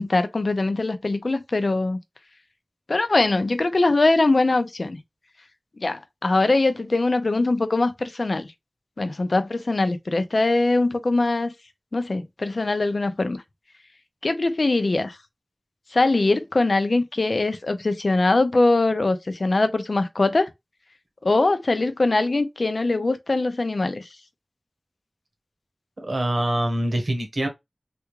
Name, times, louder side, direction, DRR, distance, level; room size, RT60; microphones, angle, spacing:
voice 1, 0.0-2.0 2.9-5.0 5.8-8.5 9.0-11.5 11.9-13.4 14.2-15.2 15.9-20.5 21.2-24.1, left 2 dB, 75° left, 0.5 m, -22 dB
voice 2, 26.0-27.5, right 1 dB, 70° right, 1.1 m, -24 dB
3.4 x 2.4 x 3.0 m
wide cardioid pair, 50°, 0 cm